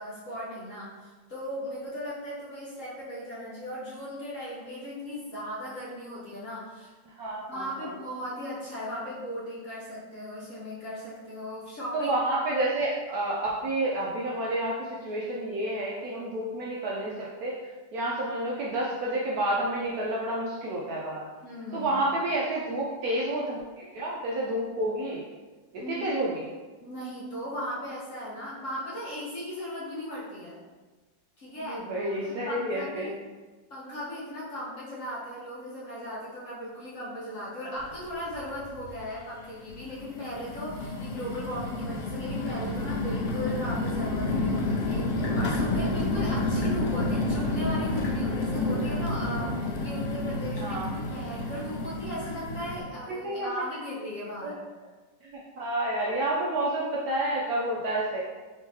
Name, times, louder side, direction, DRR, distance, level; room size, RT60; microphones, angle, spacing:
voice 1, 0.0-6.9 7.3-12.1 21.4-21.9 25.8-26.1 26.8-30.6 31.4-33.1 33.7-54.6, equal, 55° left, -7 dB, 0.9 m, -37 dB
voice 2, 7.2-7.9 11.9-17.5 17.9-21.3 21.7-25.2 25.7-26.4 31.6-33.1 50.6-50.9 53.2-53.5 54.4-54.5 55.2-55.3 55.6-58.2, right 1 dB, 75° right, -5 dB, 0.9 m, -29 dB
sound 1, 37.8-37.9 38.3-39.0 39.6-52.8, left 2 dB, 85° left, 0.6 m, -30 dB
3.6 x 3.6 x 2.7 m, 1.3 s
omnidirectional pair, 2.0 m